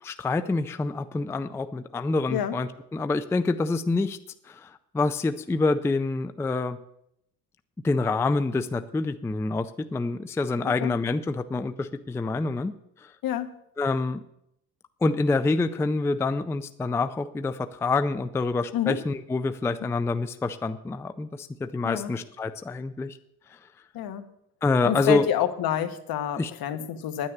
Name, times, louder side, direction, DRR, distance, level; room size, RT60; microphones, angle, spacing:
voice 1, 0.0-4.2 4.4-6.8 7.8-12.7 13.0-13.1 13.8-14.2 15.0-23.2 23.5-23.6 24.6-25.3 26.4-26.5, left 3 dB, 5° left, 10 dB, 0.4 m, -27 dB
voice 2, 13.2-13.6 18.7-19.0 21.8-22.1 23.9-24.2 24.8-27.3, left 10 dB, 65° left, 9 dB, 1.3 m, -28 dB
10.0 x 9.5 x 7.2 m, 0.75 s
cardioid pair, 145°, 38 cm